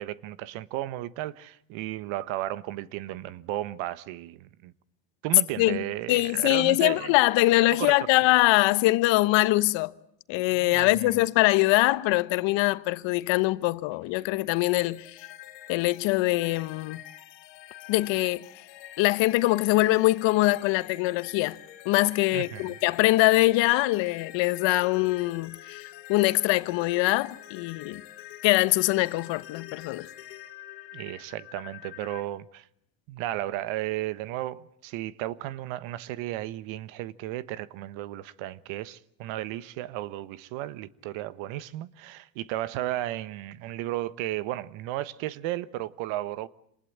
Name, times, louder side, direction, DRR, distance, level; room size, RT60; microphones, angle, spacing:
voice 1, 0.0-4.7 5.2-7.1 7.7-8.0 10.5-11.2 22.3-22.7 30.9-32.7 33.1-46.5, right 15 dB, 65° right, 1.3 m, -34 dB
voice 2, 5.6-9.9 10.3-15.2 15.7-17.0 17.9-18.4 19.0-21.6 21.8-28.0 28.4-30.1, left 19 dB, 65° left, 1.2 m, -23 dB
sound 1, 14.6-32.2, left 14 dB, 80° left, 2.7 m, -46 dB
27.0 x 20.0 x 8.7 m
supercardioid pair, 85°, 49 cm